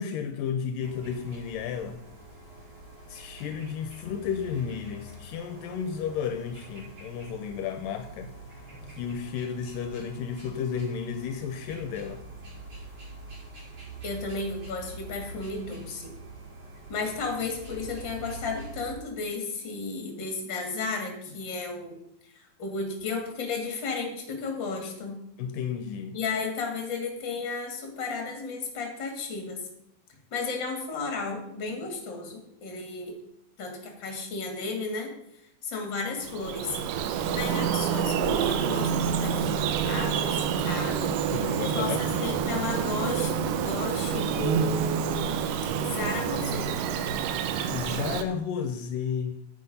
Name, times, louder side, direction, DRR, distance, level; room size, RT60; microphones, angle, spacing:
voice 1, 0.0-2.0 3.1-8.3 8.9-12.2 25.4-26.2 41.3-42.0 47.5-49.4, left 7 dB, 80° left, 8 dB, 2.2 m, -33 dB
sound 1, 0.8-18.9, right 1 dB, 55° right, 6.4 m, -45 dB
voice 2, 14.0-16.2 16.9-22.0 22.3-25.2 26.1-29.6 30.3-33.1 33.6-35.1 35.6-36.8 37.2-41.2 41.5-43.3 43.6-45.4 45.8-46.7, left 4 dB, 35° left, 3 dB, 2.5 m, -33 dB
Bird vocalization bird call bird song, 36.2-48.2, right 7 dB, 75° right, 2.3 m, -28 dB
9.5 x 8.3 x 5.4 m, 0.78 s
omnidirectional pair, 4.1 m